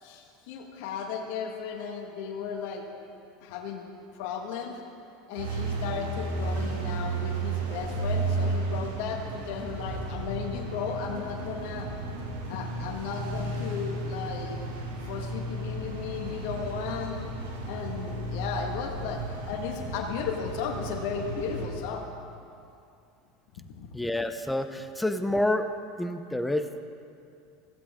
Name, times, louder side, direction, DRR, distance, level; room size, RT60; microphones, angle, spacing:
voice 1, 0.0-2.8 3.4-3.8 4.2-4.7 5.3-11.9 12.4-14.6 15.0-17.2 17.6-22.0 23.7-23.9, left 6 dB, 65° left, 3 dB, 1.5 m, -35 dB
sound 1, 5.4-21.7, right 2 dB, 80° right, 2.4 m, -33 dB
voice 2, 23.9-25.7 26.0-26.8, left 1 dB, 5° left, 9 dB, 0.8 m, -28 dB
16.0 x 15.5 x 3.7 m, 2.5 s
hypercardioid pair, 85°, 0 cm